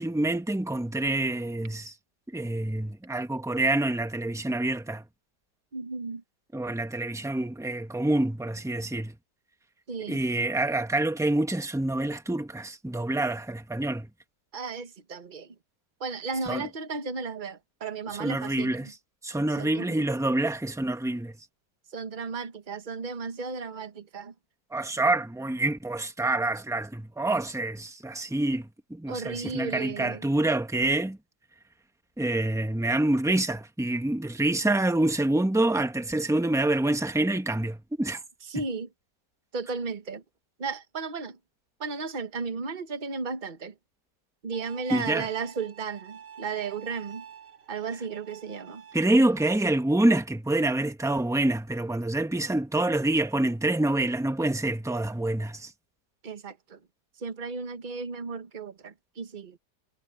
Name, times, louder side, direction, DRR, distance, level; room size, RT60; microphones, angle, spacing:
voice 1, 0.0-1.9 2.3-5.0 6.5-9.1 10.1-14.1 16.5-16.7 18.2-18.9 19.2-21.3 24.7-31.2 32.2-38.2 44.9-45.3 48.9-55.7, right 2 dB, ahead, 1.2 m, -26 dB
voice 2, 5.7-6.2 9.9-10.2 14.5-15.5 16.0-18.9 19.5-20.1 21.9-24.3 29.1-30.3 38.4-38.9 39.5-40.2 40.6-41.4 41.8-43.7 44.4-47.2 47.7-48.8 56.2-56.8 57.2-59.6, right 4 dB, 30° right, 1.3 m, -35 dB
Bowed string instrument, 44.5-49.6, right 8 dB, 75° right, 2.7 m, -48 dB
omnidirectional pair, 1.9 m